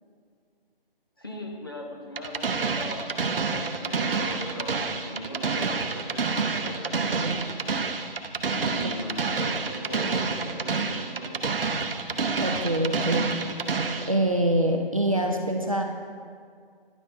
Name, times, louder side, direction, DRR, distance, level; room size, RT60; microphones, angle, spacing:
voice 1, 1.2-7.4 8.7-11.5, equal, 25° left, 0 dB, 0.6 m, -39 dB
sound 1, 2.2-14.1, right 4 dB, 70° right, 0.7 m, -28 dB
voice 2, 12.4-13.4 14.0-15.8, right 1 dB, 35° right, 3 dB, 0.4 m, -25 dB
10.5 x 8.5 x 2.5 m, 2.1 s
figure-of-eight pair, 160°, 30 cm